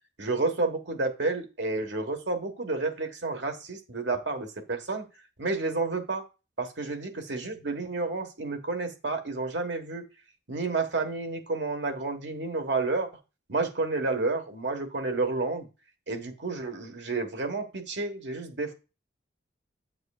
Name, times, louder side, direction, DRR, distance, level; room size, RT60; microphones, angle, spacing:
voice 1, 0.2-5.1 5.4-6.2 6.6-10.0 10.5-13.1 13.5-15.7 16.1-18.7, right 3 dB, 70° right, 6 dB, 1.5 m, -30 dB
8.6 x 7.9 x 2.4 m, 0.29 s
head